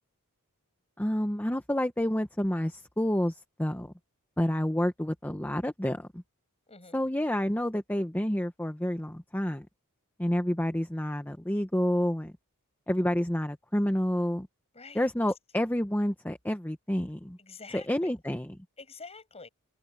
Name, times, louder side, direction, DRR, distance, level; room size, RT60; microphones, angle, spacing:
voice 1, 1.0-3.9 4.4-6.2 6.9-9.7 10.2-12.3 12.9-14.5 14.9-17.4 17.7-18.6, left 1 dB, 10° left, 1.0 m, -29 dB
voice 2, 6.7-7.0 14.7-15.0 17.4-18.1 18.8-19.5, left 4 dB, 30° left, 6.7 m, -47 dB
open air
head